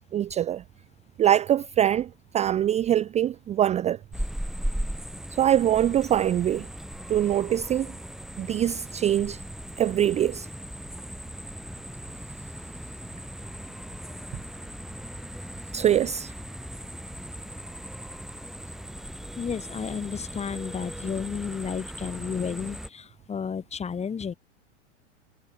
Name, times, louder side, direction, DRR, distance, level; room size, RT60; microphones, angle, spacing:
voice 1, 0.1-0.6 1.2-4.0 5.3-6.7 7.1-7.9 8.4-9.4 9.8-10.5 15.7-16.3, right 11 dB, 20° right, 0.6 m, -23 dB
sound 1, 4.1-22.9, equal, ahead, 1.6 m, -38 dB
voice 2, 19.4-24.3, left 6 dB, 15° left, 2.3 m, -32 dB
hypercardioid pair, 105°, 36 cm